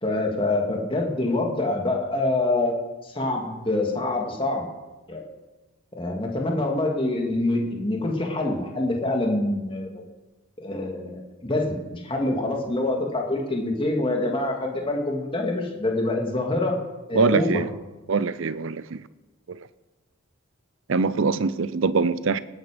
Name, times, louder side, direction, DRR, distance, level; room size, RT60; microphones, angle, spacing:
voice 1, 0.0-2.7 3.0-4.7 5.1-5.2 5.9-9.9 10.6-16.8 17.1-17.6, left 2 dB, 25° left, 1 dB, 2.3 m, -25 dB
voice 2, 17.1-17.7 18.1-19.0 19.5-19.6 20.9-22.4, right 4 dB, 70° right, 16 dB, 0.6 m, -23 dB
18.5 x 9.8 x 5.2 m, 1.1 s
head